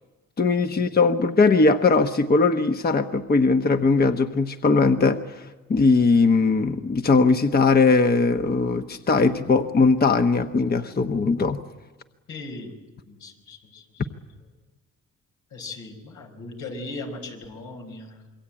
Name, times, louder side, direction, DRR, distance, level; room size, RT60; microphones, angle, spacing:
voice 1, 0.4-11.6, left 4 dB, 30° left, 7 dB, 1.1 m, -20 dB
voice 2, 12.3-12.8 13.1-14.1 14.4-14.5 15.5-18.3, left 2 dB, 85° left, 2 dB, 5.5 m, -38 dB
27.0 x 22.5 x 8.9 m, 1.2 s
cardioid pair, 90°, 30 cm